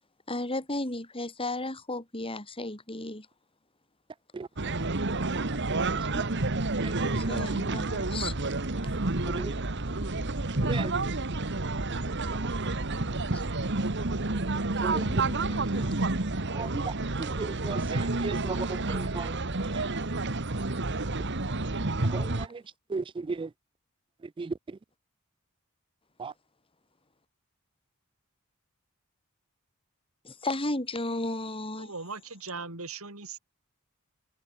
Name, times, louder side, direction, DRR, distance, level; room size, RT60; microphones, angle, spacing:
voice 1, 0.3-3.3 7.1-8.3 13.3-13.4 14.9-15.9 30.2-31.9, left 2 dB, 25° left, 5.1 m, -34 dB
sound 1, 4.6-22.5, right 2 dB, 55° right, 1.8 m, -29 dB
voice 2, 17.2-19.3 22.1-22.6 22.9-23.5 24.4-24.5 26.2-26.3, right 4 dB, 25° right, 0.3 m, -35 dB
voice 3, 31.8-33.4, right 4 dB, 75° right, 5.3 m, -39 dB
head